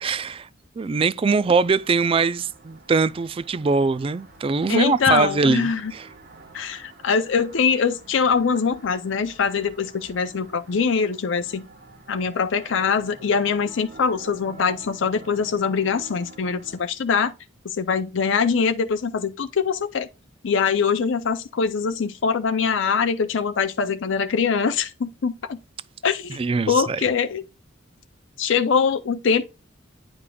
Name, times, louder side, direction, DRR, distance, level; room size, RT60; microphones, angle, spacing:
voice 1, 0.0-0.5 0.8-6.1 26.4-27.0, right 4 dB, 30° right, 0.3 m, -22 dB
sound 1, 1.6-16.8, right 3 dB, 55° right, 1.2 m, -47 dB
voice 2, 4.7-5.9 6.5-11.6 12.1-17.3 17.6-20.1 20.4-25.6 26.0-26.4 26.7-27.4 28.4-29.4, left 6 dB, 70° left, 0.5 m, -23 dB
9.7 x 5.1 x 2.3 m
head